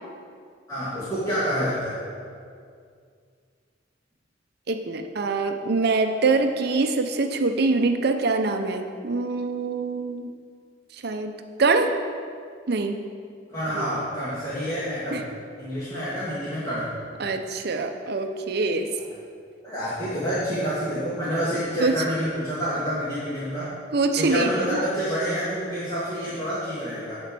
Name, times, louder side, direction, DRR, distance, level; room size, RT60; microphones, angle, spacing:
voice 1, 0.7-2.0 13.5-15.2 15.6-16.9 19.6-23.7 24.2-27.2, equal, 20° left, -11 dB, 2.2 m, -28 dB
voice 2, 4.7-10.3 11.0-12.0 12.7-13.0 13.7-13.8 15.1-15.2 17.2-18.9 21.8-21.9 23.9-24.8, right 3 dB, 60° right, 6 dB, 0.6 m, -24 dB
9.5 x 4.5 x 7.6 m, 2.2 s
head